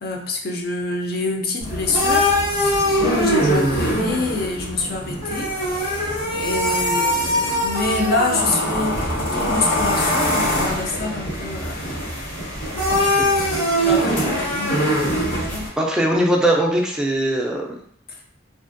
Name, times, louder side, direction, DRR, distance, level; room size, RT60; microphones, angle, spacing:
voice 1, 0.0-12.1 12.7-13.1 13.4-15.6 18.1-18.2, left 2 dB, 50° left, 1 dB, 0.5 m, -27 dB
sound 1, 1.6-15.7, equal, 90° left, 1.4 m, -22 dB
voice 2, 12.9-13.3 15.8-17.8, right 1 dB, 5° right, -1 dB, 0.4 m, -21 dB
2.9 x 2.5 x 2.5 m, 0.64 s
head